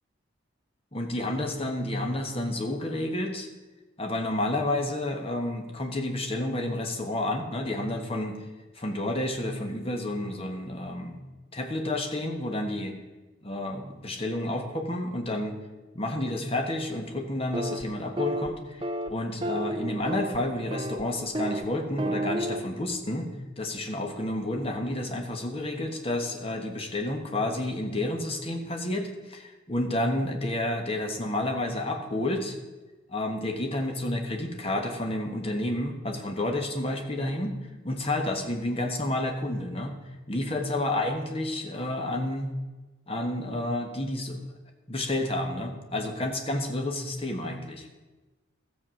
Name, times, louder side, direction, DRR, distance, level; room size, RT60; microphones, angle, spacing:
voice 1, 0.9-3.5 4.0-8.4 8.7-11.2 11.5-13.0 13.4-15.6 15.9-23.3 23.6-32.6 33.1-37.6 37.8-39.9 40.3-42.5 43.1-44.4 44.9-47.9, left 1 dB, 30° left, 4 dB, 1.3 m, -30 dB
sound 1, 17.5-17.8 18.2-18.5 18.8-19.1 19.4-20.4 20.7-21.0 21.3-21.7 22.0-22.6, right 1 dB, 25° right, 0.5 m, -31 dB
13.0 x 7.5 x 6.3 m, 1.2 s
head